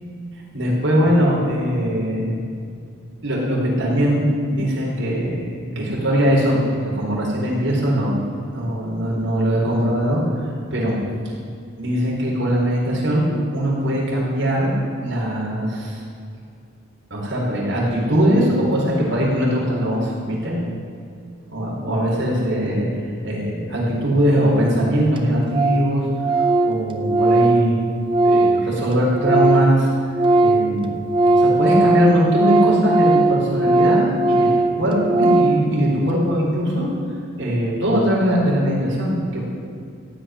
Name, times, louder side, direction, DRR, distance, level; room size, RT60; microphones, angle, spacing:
voice 1, 0.3-2.4 3.2-4.2 4.5-5.5 5.8-10.2 10.7-11.0 11.8-13.2 13.5-14.7 15.0-16.0 17.1-20.6 21.5-22.9 23.2-26.1 26.4-27.8 28.2-29.9 30.4-30.9 31.3-36.9 37.4-39.5, equal, 60° right, -4 dB, 4.2 m, -21 dB
Organ, 24.6-24.7 24.9-25.0 25.2-25.3 25.5-25.9 26.2-29.8 30.0-35.7, right 2 dB, 25° right, 0.7 m, -18 dB
15.0 x 5.9 x 9.9 m, 2.3 s
head